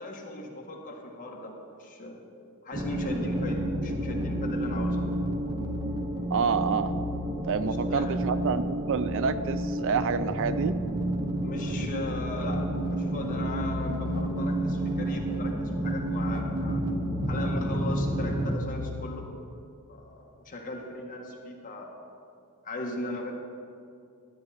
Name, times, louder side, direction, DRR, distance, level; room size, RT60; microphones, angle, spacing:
voice 1, 0.0-2.2 2.6-5.0 7.6-8.1 11.4-16.8 17.3-19.3 19.9-21.9 22.6-23.3, left 1 dB, 40° left, -1 dB, 1.5 m, -38 dB
sound 1, 2.7-18.6, right 1 dB, 20° right, 0.7 m, -30 dB
sound 2, 2.9-19.3, left 5 dB, 70° left, 0.4 m, -40 dB
voice 2, 6.3-7.0 7.5-10.8, right 6 dB, 60° right, 13 dB, 0.4 m, -28 dB
12.5 x 9.7 x 4.2 m, 2.5 s
head